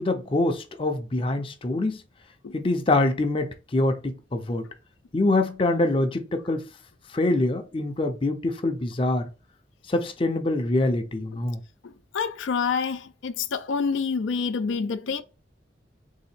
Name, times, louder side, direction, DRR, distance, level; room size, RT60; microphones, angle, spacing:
voice 1, 0.0-2.0 2.5-4.7 5.1-6.6 7.1-9.3 9.9-11.6, left 2 dB, 30° left, 0.5 m, -25 dB
voice 2, 11.8-15.2, left 5 dB, 85° left, 0.4 m, -27 dB
3.6 x 2.8 x 4.2 m
head